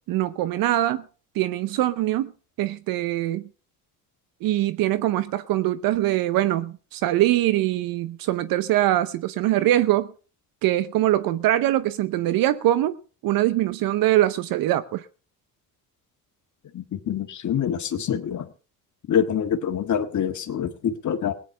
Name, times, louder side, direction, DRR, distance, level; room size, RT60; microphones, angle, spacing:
voice 1, 0.1-1.0 1.3-2.3 2.6-3.5 4.4-10.1 10.6-15.1, right 14 dB, 80° right, 0.8 m, -23 dB
voice 2, 16.7-18.4 19.1-21.3, left 8 dB, 55° left, 1.8 m, -25 dB
17.0 x 10.0 x 5.5 m
cardioid pair, 90°, 34 cm